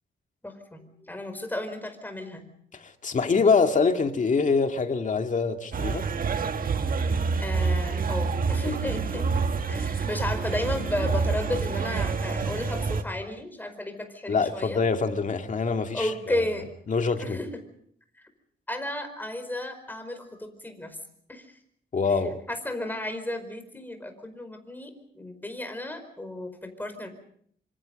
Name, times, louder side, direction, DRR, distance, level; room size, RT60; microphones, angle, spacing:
voice 1, 0.4-2.5 7.1-9.3 9.7-14.8 15.9-16.7 17.2-17.5 18.2-18.3 18.7-21.0 21.3-21.5 22.5-27.1, left 1 dB, 10° left, 4.8 m, -33 dB
voice 2, 2.7-6.1 14.3-16.4 16.9-17.4 21.9-22.4, left 4 dB, 45° left, 2.3 m, -25 dB
sound 1, 5.7-13.0, right 4 dB, 50° right, 1.6 m, -27 dB
26.5 x 26.0 x 5.3 m
wide cardioid pair, 125°, 19 cm